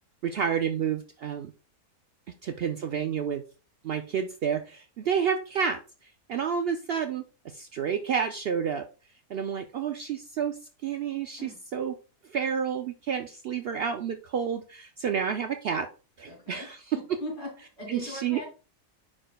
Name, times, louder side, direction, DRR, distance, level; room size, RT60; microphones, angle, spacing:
voice 1, 0.2-1.5 2.4-3.4 3.8-8.9 9.3-11.9 12.3-15.9 16.2-17.0 17.9-18.4, right 7 dB, 85° right, 6 dB, 0.5 m, -30 dB
voice 2, 16.3-16.7 16.9-18.5, left 1 dB, 35° left, -2 dB, 3.0 m, -39 dB
9.7 x 4.5 x 2.2 m, 0.34 s
omnidirectional pair, 1.6 m